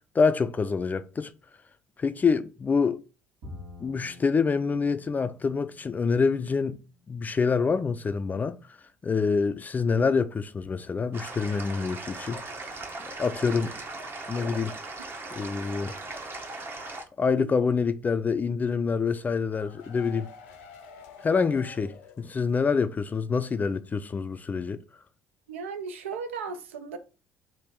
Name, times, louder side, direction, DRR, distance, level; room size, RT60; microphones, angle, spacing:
voice 1, 0.1-1.3 2.0-3.0 3.8-6.8 7.1-8.6 9.0-12.4 13.0-13.7 14.3-14.7 15.4-16.0 17.2-20.3 21.2-24.8, left 5 dB, 25° left, 0.3 m, -26 dB
Bowed string instrument, 3.4-6.8, left 2 dB, 55° right, 1.2 m, -48 dB
sound 1, 11.1-17.0, right 2 dB, 35° right, 0.8 m, -38 dB
sound 2, 19.2-22.8 23.1-23.2 23.5-23.6, left 6 dB, 75° left, 0.6 m, -48 dB
voice 2, 25.5-27.0, right 5 dB, 75° right, 0.4 m, -36 dB
3.5 x 2.6 x 4.4 m
figure-of-eight pair, 55°, 7 cm